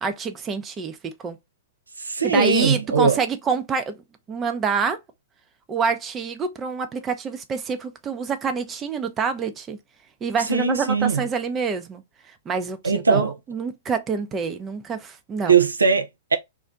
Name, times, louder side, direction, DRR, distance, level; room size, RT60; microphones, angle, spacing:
voice 1, 0.0-1.0 1.2-1.4 2.2-3.9 4.3-5.0 5.7-9.8 10.2-12.0 12.5-15.5, right 5 dB, 20° right, 0.5 m, -27 dB
voice 2, 2.0-3.2 10.5-11.3 12.8-13.3 15.5-16.4, right 5 dB, 80° right, 0.4 m, -20 dB
2.5 x 2.1 x 3.5 m
figure-of-eight pair, 110°, 0 cm